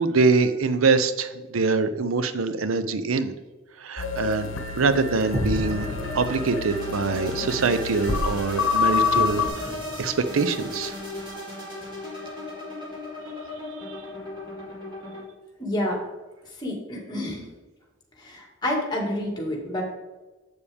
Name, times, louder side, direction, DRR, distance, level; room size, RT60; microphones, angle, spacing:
voice 1, 0.0-3.3 3.8-4.5 4.8-5.9 6.1-11.0 13.9-14.0, right 4 dB, 90° right, 11 dB, 0.6 m, -24 dB
sound 1, 4.0-9.5, left 5 dB, 70° left, 1.0 m, -27 dB
sound 2, 4.7-11.3, equal, 40° right, 1.9 m, -35 dB
sound 3, 5.6-15.2, left 2 dB, 25° right, 2.5 m, -36 dB
voice 2, 15.6-16.0 16.6-17.4 18.2-19.8, left 1 dB, 20° left, 0 dB, 2.0 m, -28 dB
8.1 x 7.0 x 3.5 m, 1.2 s
head